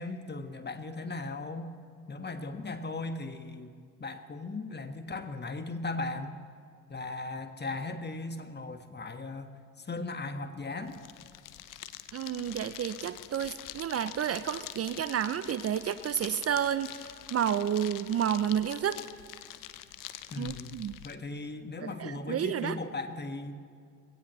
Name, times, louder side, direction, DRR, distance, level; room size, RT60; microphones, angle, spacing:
voice 1, 0.0-1.7 2.1-3.7 4.0-6.4 6.9-11.0 20.3-20.8 21.0-23.6, left 3 dB, 30° left, 7 dB, 1.4 m, -37 dB
sound 1, 10.8-21.1, left 13 dB, 60° left, 0.8 m, -45 dB
voice 2, 12.1-19.0 20.4-20.9 21.8-22.8, right 9 dB, 40° right, 14 dB, 0.6 m, -31 dB
21.0 x 17.0 x 3.1 m, 2.3 s
hypercardioid pair, 45°, 37 cm